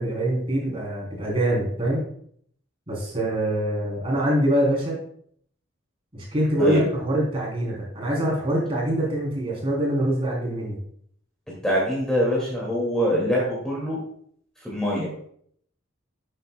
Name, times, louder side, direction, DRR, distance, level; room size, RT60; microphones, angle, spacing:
voice 1, 0.0-2.0 2.9-5.0 6.1-10.8, right 1 dB, 25° right, -3 dB, 3.4 m, -24 dB
voice 2, 11.6-14.0 14.6-15.1, equal, 5° left, -5 dB, 2.2 m, -24 dB
12.0 x 7.8 x 2.2 m, 0.63 s
head